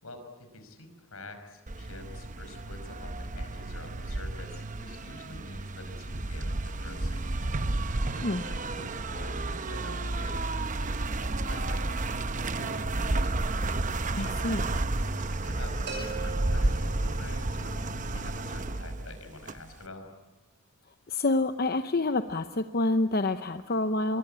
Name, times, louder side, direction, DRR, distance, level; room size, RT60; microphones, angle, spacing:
voice 1, 0.0-7.5 7.9-10.4 10.8-13.4 14.2-14.4 15.0-17.7 18.1-20.1, left 2 dB, 80° left, 7 dB, 5.4 m, -46 dB
sound 1, 1.7-19.8, right 2 dB, 35° right, 0.9 m, -32 dB
voice 2, 14.1-14.6 21.1-24.2, left 2 dB, 45° left, 9 dB, 0.8 m, -27 dB
sound 2, 15.9-17.7, right 4 dB, 50° right, 5.8 m, -41 dB
25.5 x 22.5 x 8.9 m, 1.2 s
head